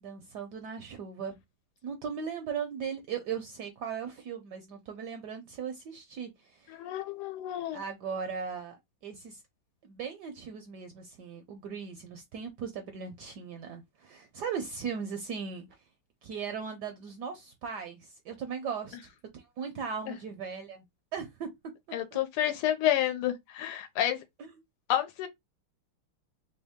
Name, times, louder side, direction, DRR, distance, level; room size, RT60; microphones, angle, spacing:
voice 1, 0.0-1.3 1.8-6.8 7.7-9.4 9.8-15.7 16.2-19.0 19.3-20.8 21.1-21.5 24.4-24.5, right 6 dB, 75° right, 1.0 m, -38 dB
voice 2, 6.7-7.8 20.1-20.2 21.9-24.2 24.9-25.3, left 11 dB, 85° left, 1.5 m, -29 dB
3.5 x 2.8 x 3.5 m
omnidirectional pair, 2.3 m